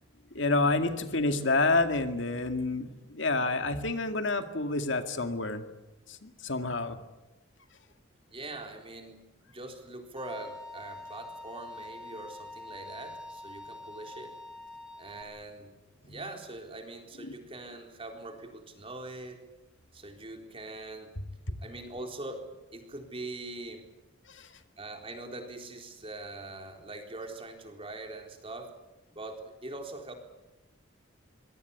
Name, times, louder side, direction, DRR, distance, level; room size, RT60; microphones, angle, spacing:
voice 1, 0.3-5.6 6.1-7.0 16.1-16.2 17.2-17.4 24.3-24.5, left 3 dB, 65° left, 7 dB, 2.2 m, -29 dB
voice 2, 8.3-14.4 15.0-15.7 16.0-19.5 19.9-21.1 21.6-23.9 24.8-28.8 29.1-30.1, right 2 dB, 30° right, 4 dB, 4.0 m, -42 dB
Bowed string instrument, 10.2-15.2, left 1 dB, 5° right, 4.1 m, -45 dB
25.0 x 21.5 x 8.4 m, 1.0 s
head